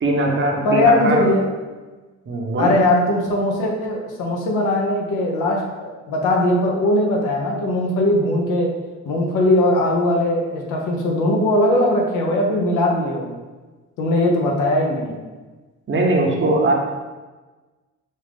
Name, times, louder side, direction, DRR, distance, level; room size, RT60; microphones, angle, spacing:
voice 1, 0.0-1.3 2.3-2.8 15.9-16.7, right 2 dB, 40° right, 0 dB, 0.9 m, -20 dB
voice 2, 0.6-1.5 2.6-8.7 9.0-13.3 14.0-15.2, left 1 dB, 90° left, 0 dB, 0.9 m, -19 dB
5.2 x 2.5 x 3.5 m, 1.3 s
cardioid pair, 90°, 30 cm